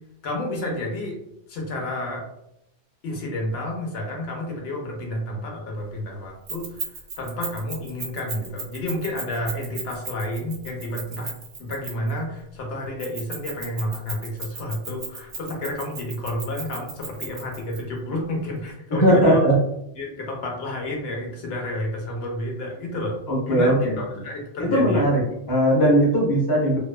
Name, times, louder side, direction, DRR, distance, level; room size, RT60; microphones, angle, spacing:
voice 1, 0.2-1.2 1.5-2.3 3.0-6.8 7.2-11.3 11.6-19.4 20.0-23.2 23.5-25.0, left 1 dB, 65° left, 0 dB, 0.8 m, -30 dB
Keys jangling, 6.5-12.2 13.0-17.8, right 4 dB, 80° right, 1.2 m, -35 dB
voice 2, 18.9-19.6 23.3-24.0 24.6-26.8, equal, 30° left, -3 dB, 0.4 m, -19 dB
2.5 x 2.2 x 2.3 m, 0.81 s
omnidirectional pair, 1.2 m